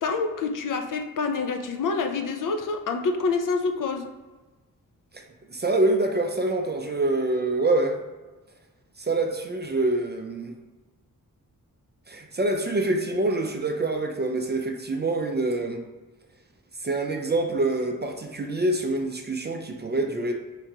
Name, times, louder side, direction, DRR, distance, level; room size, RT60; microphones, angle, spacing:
voice 1, 0.0-4.1, left 4 dB, 60° left, 6 dB, 0.5 m, -27 dB
voice 2, 5.5-8.0 9.0-10.5 12.1-15.8 16.8-20.3, right 2 dB, 30° right, 3 dB, 0.4 m, -25 dB
3.7 x 2.8 x 4.6 m, 1.2 s
wide cardioid pair, 175°, 36 cm